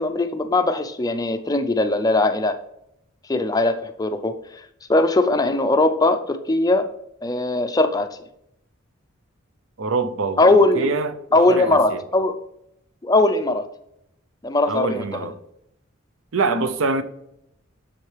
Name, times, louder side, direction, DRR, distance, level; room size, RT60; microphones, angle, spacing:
voice 1, 0.0-2.5 3.3-4.4 4.9-6.9 7.2-8.1 10.4-10.9 11.3-12.3 13.0-13.6 14.4-15.0, left 2 dB, 20° left, 0.4 m, -19 dB
voice 2, 9.8-10.4 10.7-11.2 11.5-12.0 14.7-15.3 16.3-17.0, right 4 dB, 75° right, 0.6 m, -24 dB
7.6 x 6.5 x 3.3 m
head